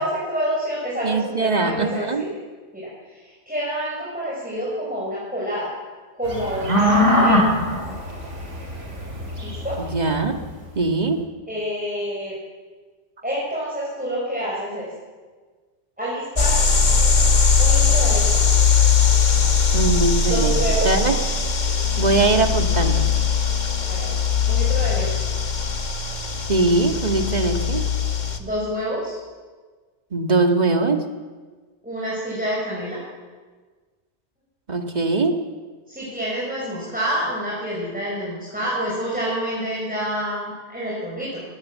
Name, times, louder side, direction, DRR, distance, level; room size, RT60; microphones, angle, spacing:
voice 1, 0.0-2.3 2.7-5.7 6.1-7.5 9.4-9.8 11.5-12.4 13.2-14.9 16.0-16.6 17.6-18.5 20.2-21.1 23.9-25.2 28.4-29.2 31.8-33.0 35.9-41.4, equal, 5° right, -6 dB, 5.7 m, -28 dB
voice 2, 1.0-2.2 9.8-10.4 10.8-11.2 19.7-20.5 20.8-21.1 22.0-23.1 26.5-27.8 30.1-31.0 34.7-35.4, right 3 dB, 35° right, 4 dB, 1.9 m, -21 dB
sound 1, 6.3-10.2, left 1 dB, 80° right, 3.9 m, -20 dB
sound 2, 16.4-28.4, left 5 dB, 40° left, 1.4 m, -20 dB
19.5 x 17.5 x 7.6 m, 1.4 s
omnidirectional pair, 1.2 m